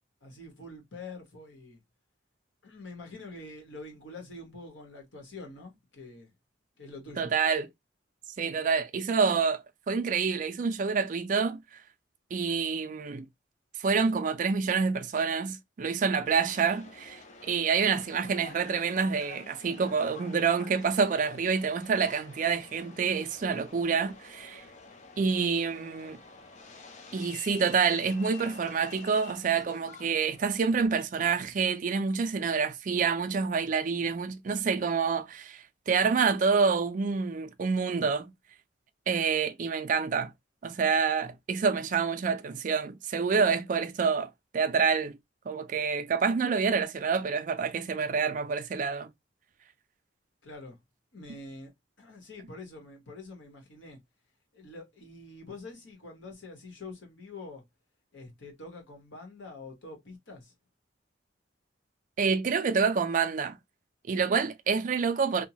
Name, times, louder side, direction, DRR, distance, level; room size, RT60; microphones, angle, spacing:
voice 1, 0.2-1.8 2.6-6.3 6.8-7.3 50.4-50.8 51.1-51.7 52.0-54.0 54.5-57.6 58.1-60.5, left 2 dB, 90° left, 1.2 m, -45 dB
voice 2, 7.2-7.7 8.4-11.6 12.3-13.3 13.8-24.6 25.2-26.2 27.1-38.3 39.1-40.3 40.6-45.2 45.5-49.1 62.2-63.6 64.1-65.5, right 5 dB, 45° right, 0.3 m, -27 dB
Subway metro underground, 16.3-30.9, left 4 dB, 40° left, 0.5 m, -49 dB
2.7 x 2.2 x 2.8 m
head